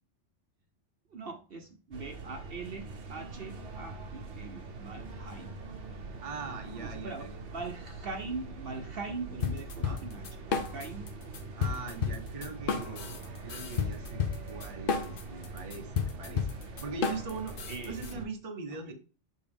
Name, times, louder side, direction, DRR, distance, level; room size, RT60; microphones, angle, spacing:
voice 1, 1.1-5.6 6.8-11.1 17.7-18.3 18.7-18.9, right 3 dB, 55° right, 5 dB, 1.0 m, -42 dB
sound 1, 1.9-18.3, right 3 dB, 75° right, 1.2 m, -43 dB
voice 2, 6.2-7.3 9.8-10.0 11.5-13.1 13.4-16.5 16.8-17.6 17.8-18.9, right 4 dB, 30° right, 5 dB, 0.9 m, -41 dB
sound 2, 9.4-11.1 11.3-18.1, left 6 dB, 50° left, 0.8 m, -32 dB
6.9 x 4.2 x 3.4 m, 0.36 s
omnidirectional pair, 1.2 m